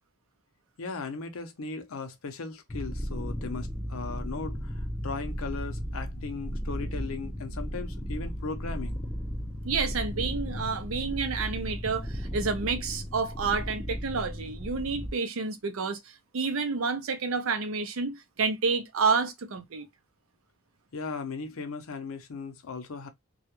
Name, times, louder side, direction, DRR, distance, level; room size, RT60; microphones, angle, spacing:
voice 1, 0.8-9.0 20.9-23.1, left 4 dB, 80° left, 0.6 m, -37 dB
sound 1, 2.7-15.1, equal, 15° left, 0.4 m, -35 dB
voice 2, 9.6-19.9, right 4 dB, 75° right, 0.5 m, -29 dB
2.3 x 2.1 x 2.8 m
head